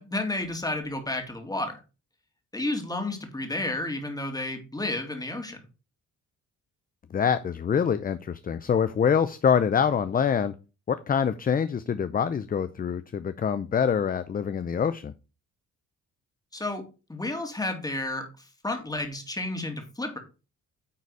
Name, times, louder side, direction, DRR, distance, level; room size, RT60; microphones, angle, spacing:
voice 1, 0.0-1.8 2.5-5.6 16.5-20.2, left 2 dB, 10° left, 4 dB, 2.3 m, -31 dB
voice 2, 7.1-10.5 10.9-15.1, left 7 dB, 30° left, 13 dB, 0.5 m, -25 dB
9.5 x 4.1 x 4.7 m, 0.32 s
cardioid pair, 90°, 30 cm